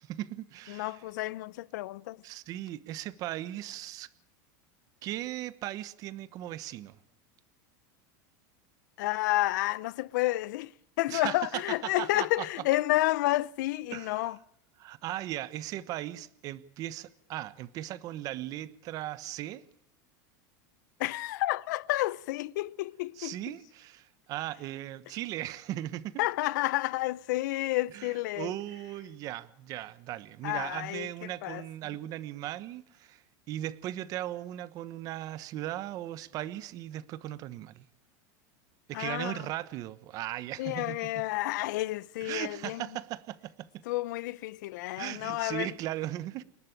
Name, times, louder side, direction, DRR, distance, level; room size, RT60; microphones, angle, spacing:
voice 1, 0.0-1.0 2.2-4.1 5.0-7.0 11.1-12.5 13.9-14.3 14.8-19.6 23.2-26.2 27.9-37.9 38.9-41.1 42.2-43.8 45.0-46.4, right 14 dB, 35° right, 1.1 m, -38 dB
voice 2, 0.7-2.2 9.0-14.4 21.0-23.5 26.2-28.5 30.4-31.1 31.4-31.6 38.9-39.5 40.6-42.9 43.8-45.7, left 18 dB, 70° left, 0.8 m, -30 dB
29.0 x 11.5 x 8.8 m
supercardioid pair, 165°, 10 cm